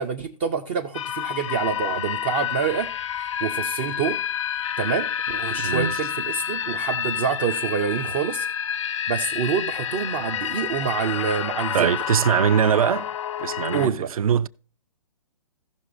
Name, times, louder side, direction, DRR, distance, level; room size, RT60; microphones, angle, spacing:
voice 1, 0.0-2.9 3.4-4.2 4.8-8.5 9.1-11.9 13.7-14.1, right 7 dB, 15° right, 0.3 m, -27 dB
sound 1, 0.9-13.9, left 9 dB, 55° left, 0.5 m, -29 dB
voice 2, 5.6-6.0 11.7-13.1 13.4-14.5, right 8 dB, 65° right, 0.6 m, -22 dB
17.0 x 6.0 x 2.6 m
hypercardioid pair, 155°, 19 cm